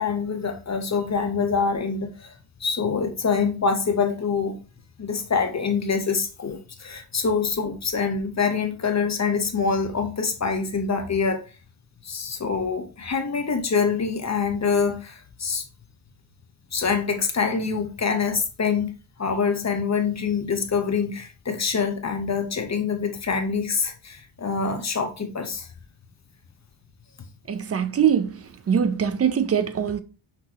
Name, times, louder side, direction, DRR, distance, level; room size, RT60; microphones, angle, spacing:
voice 1, 0.0-4.6 5.0-11.4 12.0-15.7 16.7-18.9 19.2-25.7, left 5 dB, 35° left, 0.8 m, -25 dB
voice 2, 27.5-30.0, right 8 dB, 30° right, 0.5 m, -23 dB
5.9 x 3.0 x 2.9 m
cardioid pair, 100°, 50 cm